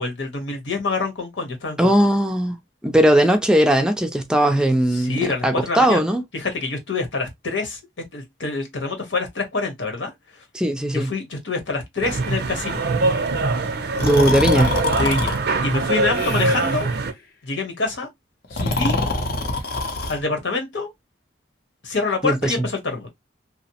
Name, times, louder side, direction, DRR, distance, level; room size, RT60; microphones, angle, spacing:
voice 1, 0.0-1.9 4.9-6.0 6.3-7.8 8.1-10.4 10.9-12.8 15.0-16.9 17.4-18.1 18.5-19.0 20.1-20.9 21.8-23.1, left 3 dB, 85° left, 1.0 m, -26 dB
voice 2, 1.8-2.6 2.8-6.2 10.5-11.1 14.0-14.7 22.2-22.5, right 1 dB, 5° right, 0.4 m, -18 dB
sound 1, 12.0-17.1, right 3 dB, 60° right, 0.5 m, -23 dB
Breathing, 13.9-15.4 16.1-16.8 18.4-20.2, left 2 dB, 55° left, 0.6 m, -25 dB
2.8 x 2.0 x 2.7 m
head